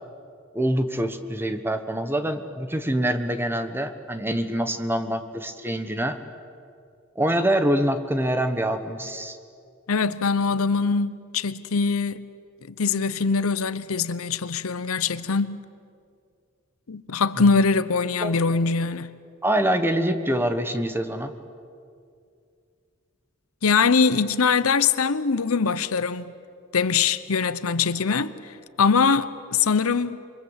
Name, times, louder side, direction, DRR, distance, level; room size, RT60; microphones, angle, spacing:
voice 1, 0.5-6.2 7.2-9.4 18.2-18.4 19.4-21.3, right 1 dB, 10° right, 1.3 m, -25 dB
voice 2, 9.9-12.2 12.7-15.6 16.9-19.1 23.6-26.2 26.7-28.5 28.8-30.2, left 5 dB, 80° left, 0.8 m, -22 dB
28.0 x 24.0 x 8.1 m
head